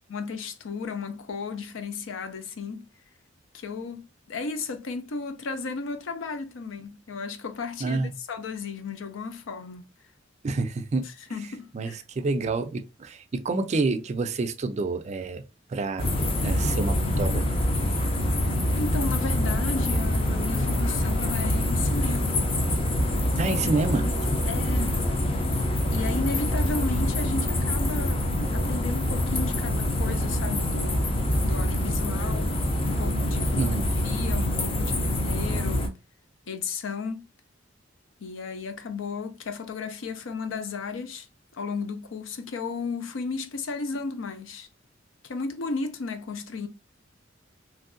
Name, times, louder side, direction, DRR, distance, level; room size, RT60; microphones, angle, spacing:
voice 1, 0.1-2.9 3.5-9.9 11.0-12.0 18.8-22.4 23.4-23.6 23.9-24.2 24.5-25.0 25.9-31.1 31.4-32.6 32.8-33.8 34.0-35.9 36.5-37.3 38.2-41.3 41.5-44.7 45.2-46.7, left 4 dB, 90° left, 0.5 m, -34 dB
voice 2, 7.8-8.1 10.4-11.1 11.7-15.4 15.7-16.1 16.4-17.4 23.4-24.1 33.6-33.8, right 3 dB, 35° right, 0.4 m, -28 dB
sound 1, 16.0-35.9, left 1 dB, 30° left, 0.5 m, -25 dB
3.1 x 2.6 x 2.5 m
head